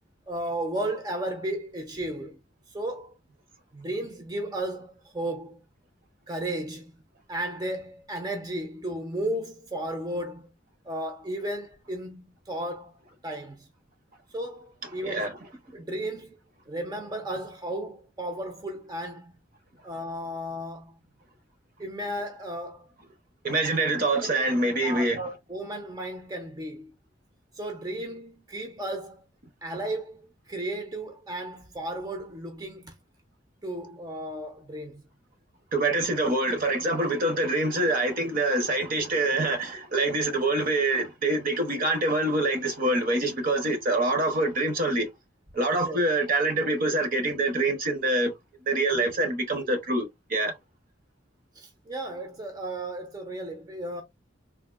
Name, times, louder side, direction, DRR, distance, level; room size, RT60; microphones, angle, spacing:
voice 1, 0.3-2.4 2.7-3.1 3.7-5.6 6.3-6.9 7.3-10.5 10.9-12.9 13.2-13.7 14.3-15.2 15.7-16.4 16.7-19.4 19.8-21.0 21.8-22.9 24.2-24.5 24.8-26.9 27.5-29.3 29.6-32.9 33.6-35.0 45.8-46.0 51.6-54.0, right 1 dB, 20° right, 0.6 m, -34 dB
voice 2, 15.0-15.4 23.4-25.2 35.7-45.1 45.5-48.3 48.7-50.5, right 2 dB, 50° right, 0.8 m, -25 dB
3.5 x 2.5 x 2.4 m
head